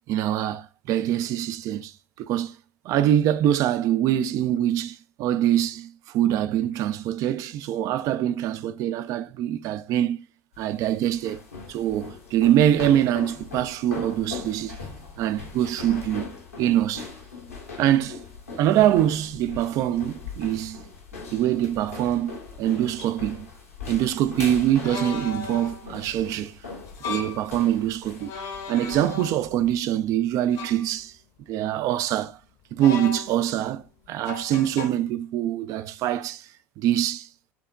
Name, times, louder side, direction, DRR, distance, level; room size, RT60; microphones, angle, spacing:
voice 1, 0.1-1.9 2.2-2.5 2.8-10.2 10.6-11.4 11.7-14.8 15.2-17.1 17.8-18.2 18.6-20.8 21.3-23.5 23.9-26.6 27.1-28.3 28.7-31.1 31.5-32.4 32.7-36.5 36.8-37.3, right 11 dB, 45° right, 0.4 m, -24 dB
sound 1, 10.5-29.8, left 4 dB, 80° left, 1.0 m, -40 dB
sound 2, 22.0-22.1 23.0-23.1 24.8-25.9 26.9-27.5 28.2-29.7 30.5-30.9 32.8-33.6 34.3-34.9, left 5 dB, 50° left, 0.8 m, -36 dB
5.7 x 2.8 x 2.3 m
figure-of-eight pair, 65°, 7 cm